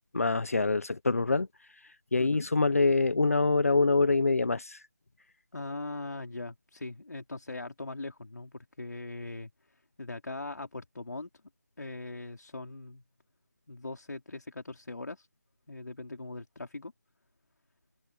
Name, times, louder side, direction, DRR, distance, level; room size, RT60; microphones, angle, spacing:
voice 1, 0.1-1.5 2.1-4.8, left 3 dB, 50° left, 1.1 m, -25 dB
voice 2, 5.5-9.5 10.0-11.3 11.8-13.0 13.7-15.3 15.7-16.9, left 2 dB, 65° left, 4.8 m, -40 dB
figure-of-eight pair, 180°, 10 cm